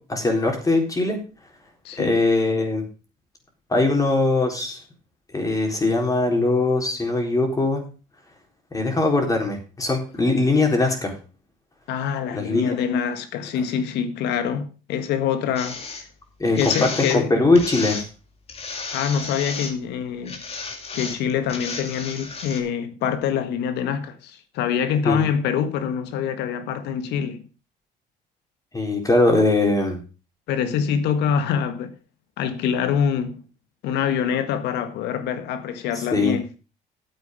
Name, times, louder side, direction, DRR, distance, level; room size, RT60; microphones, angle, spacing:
voice 1, 0.1-1.2 2.0-2.8 3.7-4.8 5.3-7.8 8.7-11.1 12.3-12.7 16.4-16.6 17.0-18.0 25.0-25.2 28.7-30.0 36.1-36.4, left 2 dB, 20° left, 4.0 m, -21 dB
voice 2, 1.8-2.2 11.9-15.8 16.6-17.4 18.9-20.4 20.9-27.5 30.5-31.9 32.4-33.4 33.8-36.5, left 7 dB, 85° left, 1.6 m, -25 dB
sound 1, 15.6-16.0 16.5-17.2 17.6-18.1 18.5-19.7 20.3-22.6, left 4 dB, 35° left, 2.5 m, -33 dB
9.7 x 8.3 x 5.3 m
cardioid pair, 110°, 17 cm